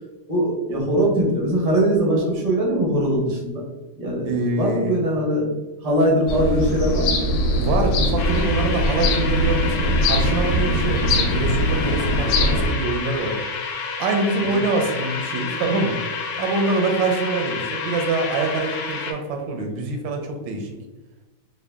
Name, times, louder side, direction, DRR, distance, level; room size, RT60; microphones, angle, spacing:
voice 1, 0.3-3.6 4.0-5.5 5.8-7.2 14.5-14.7, right 1 dB, 40° right, -2 dB, 0.5 m, -21 dB
voice 2, 4.2-5.0 7.5-13.4 14.0-16.0 16.4-20.8, right 3 dB, 80° right, 3 dB, 1.3 m, -25 dB
sound 1, 6.3-12.7, equal, 90° left, 1.4 m, -21 dB
sound 2, 8.2-19.1, left 5 dB, 75° left, 1.1 m, -30 dB
3.6 x 2.2 x 3.4 m, 1.1 s
omnidirectional pair, 2.1 m